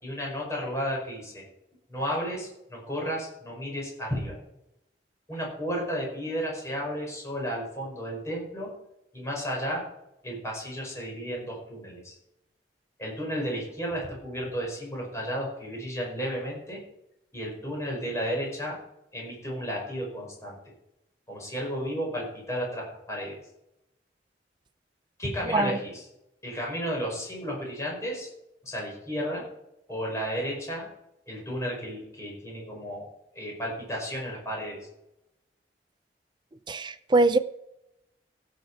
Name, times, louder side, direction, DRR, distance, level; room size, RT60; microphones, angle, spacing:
voice 1, 0.0-1.4 1.9-4.4 5.3-8.7 9.1-9.8 10.2-12.2 13.0-16.8 17.3-18.8 19.1-20.6 21.3-23.4 25.2-26.0 26.4-28.3 28.6-29.5 29.9-30.9 31.3-33.1 33.3-34.8, equal, 15° left, -2 dB, 5.0 m, -33 dB
voice 2, 36.7-37.4, right 2 dB, 25° right, 12 dB, 0.5 m, -22 dB
16.5 x 7.2 x 4.7 m, 0.86 s
head